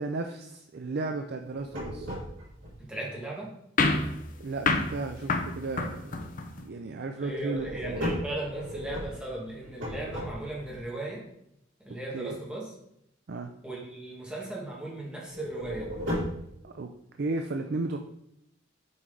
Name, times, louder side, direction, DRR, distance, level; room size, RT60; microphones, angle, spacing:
voice 1, 0.0-2.2 4.4-6.3 6.6-8.1 12.1-12.4 13.3-13.5 16.6-16.9 17.2-18.0, right 3 dB, 55° right, 5 dB, 0.5 m, -34 dB
sound 1, 1.4-2.7 7.2-10.8 15.3-16.5, equal, 90° right, 3.0 m, -35 dB
voice 2, 2.8-3.5 7.2-11.3 11.8-12.6 13.6-15.9, right 2 dB, 5° right, -5 dB, 2.0 m, -37 dB
sound 2, 3.8-6.7, left 3 dB, 45° left, 0.7 m, -28 dB
7.7 x 4.7 x 3.9 m, 0.77 s
head